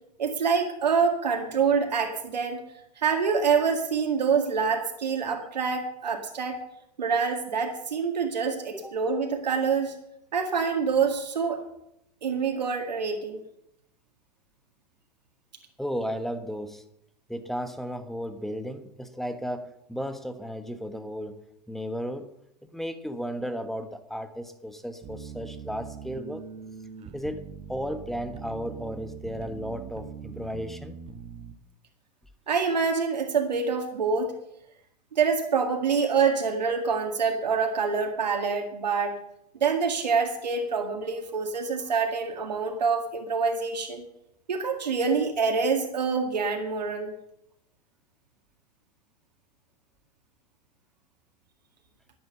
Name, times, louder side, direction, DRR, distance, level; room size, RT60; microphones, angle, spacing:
voice 1, 0.2-2.6 3.0-6.6 7.0-10.0 10.3-11.6 12.2-13.4 32.5-34.3 35.1-39.2 39.6-44.1 44.5-47.1, right 5 dB, 80° right, 3 dB, 2.0 m, -26 dB
voice 2, 15.8-16.8 17.3-22.3 22.7-26.4 27.1-31.0, equal, ahead, 9 dB, 1.3 m, -34 dB
sound 1, 25.0-31.5, right 7 dB, 30° right, 1.3 m, -42 dB
12.0 x 10.0 x 6.8 m, 0.78 s
hypercardioid pair, 105°, 21 cm